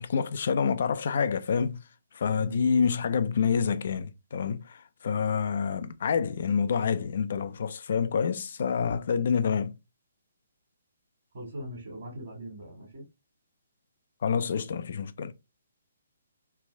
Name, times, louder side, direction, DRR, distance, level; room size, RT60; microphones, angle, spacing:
voice 1, 0.0-1.8 2.1-9.7 14.2-15.3, left 6 dB, 50° left, 0.4 m, -27 dB
voice 2, 11.3-13.0, equal, 50° right, 1.5 m, -40 dB
3.3 x 2.5 x 3.1 m
figure-of-eight pair, 130°, 0 cm